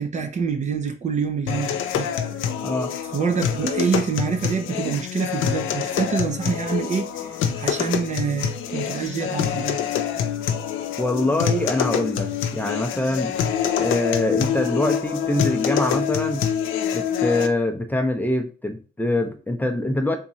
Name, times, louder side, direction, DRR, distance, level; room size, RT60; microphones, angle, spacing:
voice 1, 0.0-2.1 3.1-9.8, right 5 dB, 35° right, 0.5 m, -26 dB
sound 1, 1.5-17.5, left 9 dB, 85° left, 0.5 m, -26 dB
voice 2, 2.6-2.9 11.0-13.3 13.8-16.5 16.9-20.2, left 1 dB, 10° left, 0.5 m, -24 dB
3.6 x 3.0 x 2.7 m
cardioid pair, 90°, 20 cm